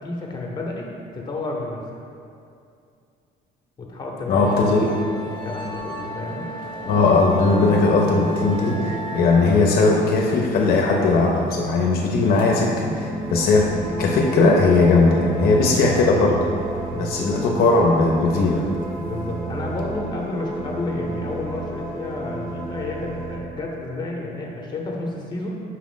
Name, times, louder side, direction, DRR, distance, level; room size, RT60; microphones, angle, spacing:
voice 1, 0.0-0.9 1.1-2.0 3.8-4.6 5.0-6.5 16.9-17.1 19.0-25.5, left 2 dB, 25° left, -1 dB, 0.7 m, -31 dB
voice 2, 4.3-4.9 6.9-13.7 14.0-16.5 17.0-18.7, left 3 dB, 65° left, -1 dB, 0.5 m, -18 dB
Musical instrument, 4.4-19.9, right 1 dB, 55° right, 0.6 m, -35 dB
sound 1, 7.0-10.5 12.3-23.4, right 1 dB, 15° right, 0.7 m, -32 dB
5.6 x 2.4 x 3.7 m, 2.4 s
cardioid pair, 110°, 17 cm